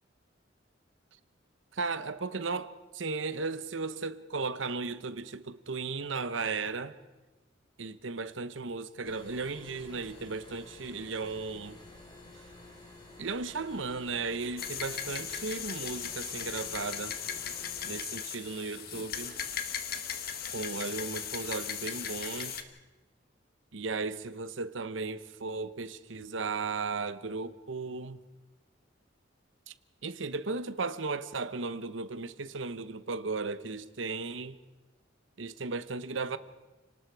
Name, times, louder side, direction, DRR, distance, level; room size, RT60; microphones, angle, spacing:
voice 1, 1.7-7.0 7.8-11.8 13.2-17.2 17.8-19.4 20.5-22.6 23.7-28.2 29.7-29.8 30.0-34.6 35.4-36.4, right 4 dB, 80° right, 0.9 m, -35 dB
sound 1, 9.0-18.0, left 2 dB, 20° left, 3.9 m, -51 dB
sound 2, 14.6-22.6, left 8 dB, 55° left, 1.4 m, -37 dB
29.5 x 19.0 x 4.7 m
head